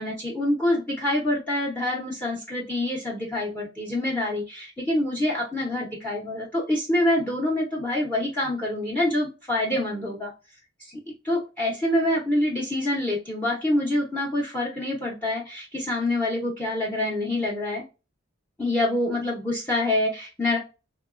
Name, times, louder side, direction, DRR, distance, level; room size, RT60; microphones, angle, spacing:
voice 1, 0.0-10.3 11.2-17.8 18.6-20.6, left 1 dB, 10° left, -3 dB, 0.6 m, -26 dB
3.0 x 2.2 x 2.4 m, 0.30 s
head